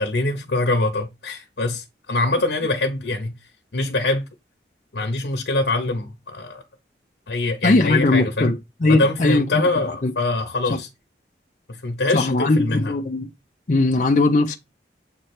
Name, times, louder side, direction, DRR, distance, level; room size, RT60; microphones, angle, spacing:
voice 1, 0.0-3.3 3.7-4.2 4.9-6.6 7.3-8.5 8.9-10.9 11.7-12.9, left 2 dB, 75° left, 0.9 m, -24 dB
voice 2, 7.6-8.5 8.8-9.6 10.0-10.1 10.7-10.8 12.1-13.3 13.7-14.6, left 2 dB, 45° left, 0.5 m, -19 dB
7.4 x 3.2 x 4.4 m
head